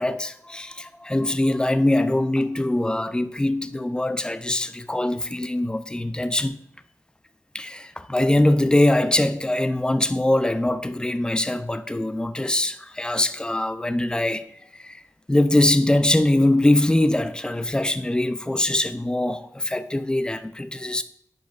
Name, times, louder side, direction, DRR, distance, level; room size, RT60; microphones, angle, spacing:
voice 1, 0.0-6.6 7.5-14.5 14.7-15.0 15.3-21.0, left 1 dB, 15° left, 0.5 m, -22 dB
9.3 x 5.0 x 2.5 m
cardioid pair, 65°, 6 cm